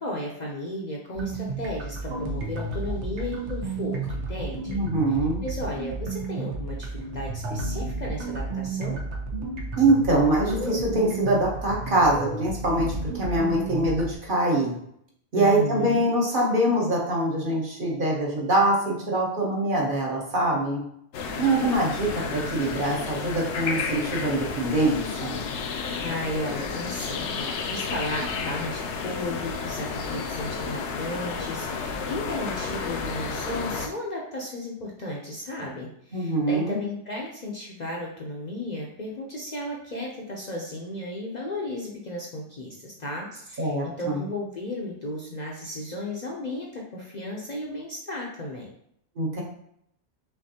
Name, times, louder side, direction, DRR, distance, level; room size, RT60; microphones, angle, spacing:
voice 1, 0.0-4.8 5.4-9.0 15.3-16.0 26.0-48.7, left 1 dB, 45° left, -2 dB, 0.6 m, -34 dB
sound 1, 1.2-14.2, right 3 dB, 75° right, 1.0 m, -32 dB
voice 2, 4.7-5.4 9.8-14.7 15.3-20.8 21.4-25.4 36.1-36.8 43.6-44.2 49.2-49.4, right 1 dB, 50° right, -3 dB, 1.1 m, -24 dB
sound 2, 21.1-33.9, left 5 dB, 75° left, 0.8 m, -32 dB
5.6 x 2.6 x 2.8 m, 0.72 s
omnidirectional pair, 1.2 m